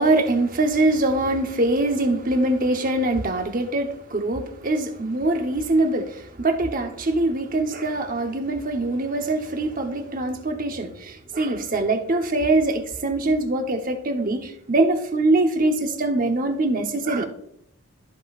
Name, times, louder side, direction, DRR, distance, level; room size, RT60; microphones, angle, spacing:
voice 1, 0.0-17.3, right 2 dB, 40° right, 0.9 m, -23 dB
13.5 x 5.2 x 2.4 m
head